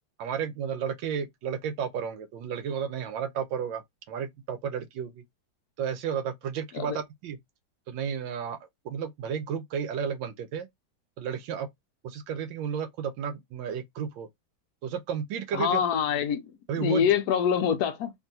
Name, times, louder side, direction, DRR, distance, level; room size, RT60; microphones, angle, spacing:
voice 1, 0.2-3.8 4.1-5.2 5.8-7.4 7.9-8.6 8.8-10.7 11.2-11.7 12.0-14.3 14.8-15.8 16.7-17.1, right 7 dB, 85° right, 1.4 m, -32 dB
voice 2, 15.5-16.4 16.8-18.1, left 8 dB, 70° left, 0.9 m, -25 dB
3.6 x 2.6 x 2.6 m
omnidirectional pair, 2.0 m